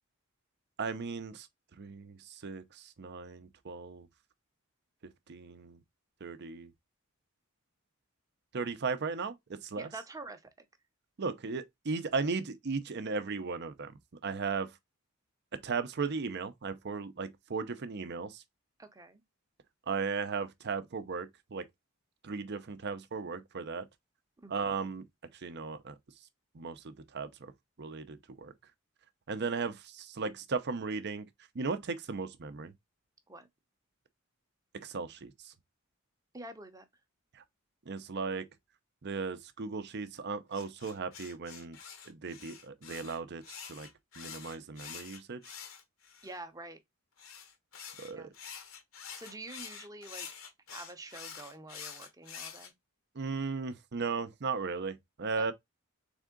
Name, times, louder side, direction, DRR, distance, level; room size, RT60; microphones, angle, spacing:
voice 1, 0.8-1.5 1.8-2.2 2.4-4.1 5.3-5.8 6.2-6.7 8.5-9.9 11.2-13.9 14.2-14.7 15.6-18.4 19.9-21.6 22.2-23.8 24.5-25.0 25.4-25.9 26.5-27.5 27.8-28.5 29.3-31.2 31.5-32.7 34.7-35.5 37.9-38.5 39.0-41.8 42.1-43.9 44.2-45.4 48.0-48.3 53.2-55.5, right 4 dB, 55° right, 0.6 m, -36 dB
voice 2, 9.8-10.4 18.8-19.2 24.4-24.8 33.3-33.5 36.3-36.8 46.2-46.8 48.1-48.3 49.2-50.3 50.7-52.7 55.4-55.5, right 2 dB, 15° right, 0.7 m, -46 dB
sound 1, 40.5-46.4 47.2-52.7, left 7 dB, 70° left, 1.0 m, -47 dB
3.6 x 3.6 x 3.6 m
head